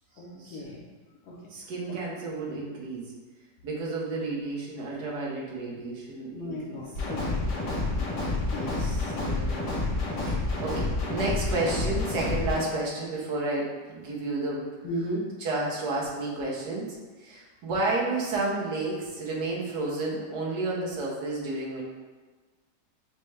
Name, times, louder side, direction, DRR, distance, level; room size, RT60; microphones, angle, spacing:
voice 1, 0.2-0.9 1.2-1.3 1.9-2.0 6.3-7.5 7.9-8.2 8.5-8.9 14.8-15.3, equal, 65° left, -3 dB, 1.1 m, -35 dB
voice 2, 1.5-3.1 3.6-6.8 8.8-9.7 10.2-14.7 15.4-21.8, right 2 dB, 75° right, -4 dB, 1.5 m, -31 dB
sound 1, 6.9-12.6, left 2 dB, 90° left, 1.8 m, -29 dB
6.6 x 2.2 x 3.3 m, 1.3 s
omnidirectional pair, 1.8 m